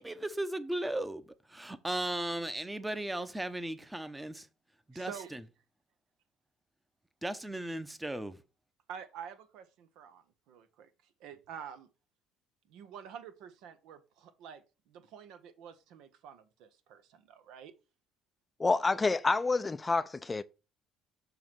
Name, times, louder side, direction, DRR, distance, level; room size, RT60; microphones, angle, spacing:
voice 1, 0.0-4.5 5.0-5.4 7.2-8.4, right 1 dB, 10° right, 0.8 m, -36 dB
voice 2, 4.9-5.3 8.9-10.9 11.2-11.9 12.7-17.7, right 8 dB, 75° right, 0.8 m, -48 dB
voice 3, 18.6-20.4, left 3 dB, 25° left, 0.4 m, -28 dB
7.0 x 3.1 x 5.9 m
supercardioid pair, 75°, 0 cm